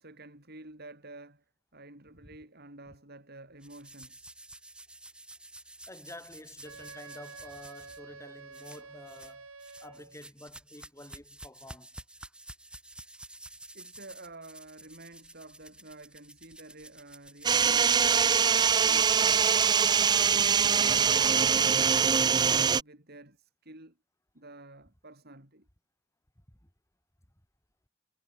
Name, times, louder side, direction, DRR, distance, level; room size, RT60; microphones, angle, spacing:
voice 1, 0.0-1.4 1.7-4.4 13.7-19.5 19.9-21.1 21.4-24.0 24.3-25.7, right 2 dB, 50° right, 7.9 m, -50 dB
sound 1, 3.6-8.0 8.5-9.3 9.6-21.5, right 1 dB, 5° right, 2.9 m, -51 dB
voice 2, 5.9-9.5 9.8-12.0 26.5-26.6, left 1 dB, 15° left, 3.0 m, -49 dB
Wind instrument woodwind instrument, 6.6-10.2, right 4 dB, 85° right, 6.6 m, -48 dB
sound 2, 17.4-22.8, right 7 dB, 20° right, 0.3 m, -23 dB
head